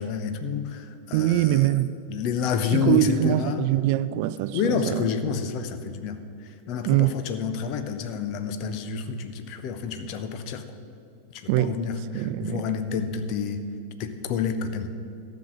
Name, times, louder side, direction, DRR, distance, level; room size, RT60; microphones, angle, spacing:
voice 1, 0.0-1.7 2.1-3.7 4.5-10.6 11.3-13.6 14.0-14.9, left 6 dB, 40° left, 0.9 m, -29 dB
voice 2, 1.1-2.0 2.7-5.1 6.9-7.2 11.5-11.8 12.1-12.7, right 14 dB, 45° right, 0.3 m, -23 dB
13.5 x 6.1 x 7.5 m
figure-of-eight pair, 90°, 0 cm